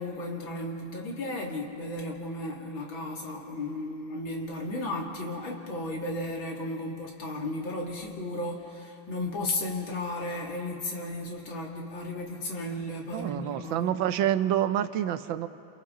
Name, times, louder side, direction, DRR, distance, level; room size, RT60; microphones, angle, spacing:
voice 1, 0.0-13.9, left 1 dB, 85° left, -1 dB, 3.1 m, -34 dB
voice 2, 13.1-15.5, right 11 dB, 85° right, 12 dB, 1.5 m, -27 dB
30.0 x 29.0 x 3.8 m, 2.8 s
omnidirectional pair, 2.1 m